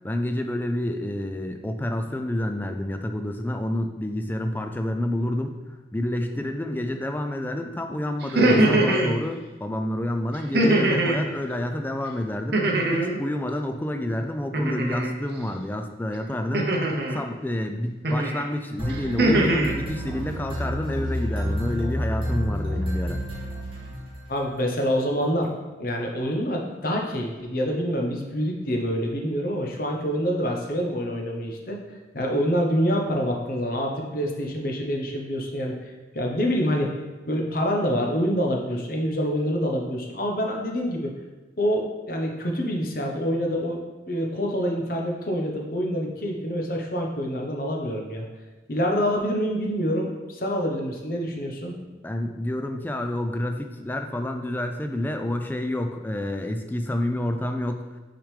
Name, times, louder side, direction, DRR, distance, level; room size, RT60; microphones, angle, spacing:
voice 1, 0.0-5.5 5.9-12.6 12.9-16.7 17.1-23.2 52.0-58.0, left 1 dB, 10° left, 6 dB, 0.3 m, -29 dB
sound 1, 8.2-9.1 10.5-11.2 12.5-13.2 14.5-15.1 16.5-17.2 18.0-18.4 18.9-19.7, right 1 dB, 60° right, 0.7 m, -21 dB
sound 2, 18.8-24.5, equal, 30° right, 1.3 m, -30 dB
voice 2, 24.3-25.5 25.8-31.8 32.1-35.8 36.1-37.0 37.3-41.1 41.6-43.8 44.1-48.3 48.7-51.7, equal, 50° left, 1 dB, 0.9 m, -26 dB
6.1 x 5.0 x 3.3 m, 1.2 s
head